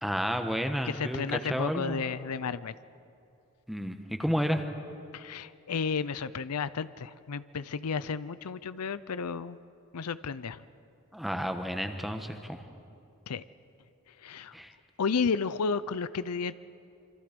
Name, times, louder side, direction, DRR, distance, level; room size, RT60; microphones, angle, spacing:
voice 1, 0.0-2.0 3.7-4.6 11.1-12.6 14.5-14.7, equal, ahead, 6 dB, 1.2 m, -31 dB
voice 2, 0.8-2.7 5.1-9.6 9.9-10.6 13.3-13.4 14.2-14.5 15.0-16.6, left 5 dB, 80° left, 16 dB, 0.6 m, -32 dB
27.0 x 25.0 x 5.2 m, 2.6 s
head